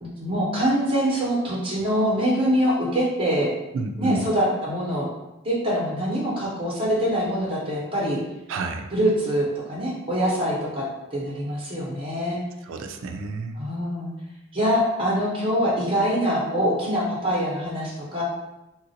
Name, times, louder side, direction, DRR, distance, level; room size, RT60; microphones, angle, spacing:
voice 1, 0.0-3.5 4.0-5.1 5.4-8.2 8.9-10.8 11.1-12.4 13.5-14.1 14.5-18.2, equal, 25° right, -5 dB, 0.9 m, -24 dB
voice 2, 3.7-4.3 8.5-8.9 12.6-13.6, right 3 dB, 75° right, 5 dB, 0.3 m, -30 dB
3.1 x 2.5 x 2.7 m, 0.96 s
head